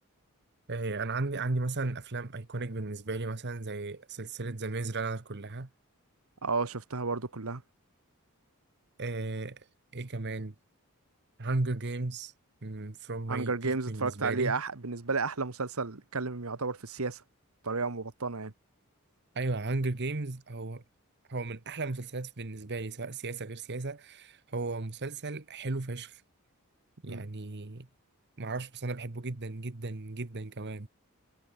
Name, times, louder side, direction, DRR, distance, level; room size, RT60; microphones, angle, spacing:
voice 1, 0.7-5.7 9.0-9.7 9.9-10.5 11.4-12.3 12.6-14.6 19.3-20.8 21.3-26.2 27.0-27.9 28.4-30.9, right 3 dB, 50° right, 1.2 m, -35 dB
voice 2, 6.4-7.6 13.3-17.2 17.6-18.5 27.1-27.2, right 4 dB, 75° right, 1.4 m, -32 dB
head